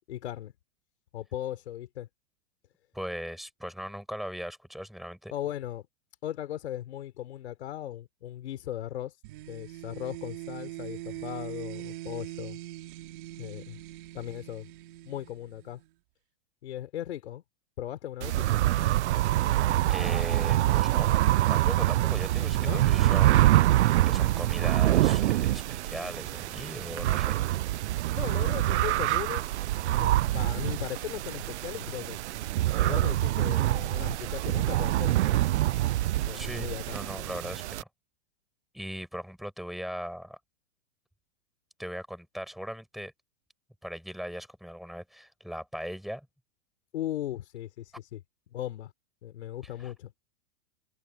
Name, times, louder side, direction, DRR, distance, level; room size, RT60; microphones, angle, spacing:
voice 1, 0.1-0.5 1.1-2.1 5.3-5.9 6.2-9.1 9.5-12.6 13.4-13.8 14.1-14.7 15.0-15.8 16.6-17.4 17.8-18.6 22.6-22.8 28.1-29.5 29.9-32.2 32.8-35.4 36.3-37.0 46.9-47.8 48.1-48.2 48.5-48.9 49.2-50.1, left 12 dB, 75° left, 4.4 m, -37 dB
voice 2, 2.9-5.3 19.9-21.1 21.5-27.4 36.3-37.9 38.7-40.4 41.8-43.1 43.8-46.3 49.8-49.9, equal, ahead, 7.1 m, -39 dB
sound 1, 9.2-15.9, right 17 dB, 50° right, 3.9 m, -42 dB
sound 2, 18.2-37.8, right 15 dB, 85° right, 0.5 m, -25 dB
supercardioid pair, 155°, 34 cm